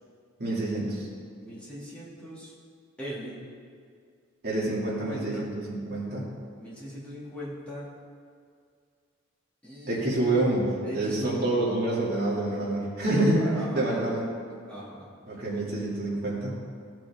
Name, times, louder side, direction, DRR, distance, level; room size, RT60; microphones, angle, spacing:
voice 1, 0.4-1.1 4.4-6.2 9.9-10.6 10.9-14.3 15.3-16.5, right 2 dB, 50° right, -6 dB, 2.5 m, -27 dB
voice 2, 1.4-2.5 3.0-3.4 4.9-5.5 6.6-7.9 9.6-10.5 10.8-11.5 13.4-14.0 14.7-15.1, equal, 5° left, -9 dB, 2.4 m, -39 dB
15.5 x 6.0 x 3.6 m, 2.2 s
head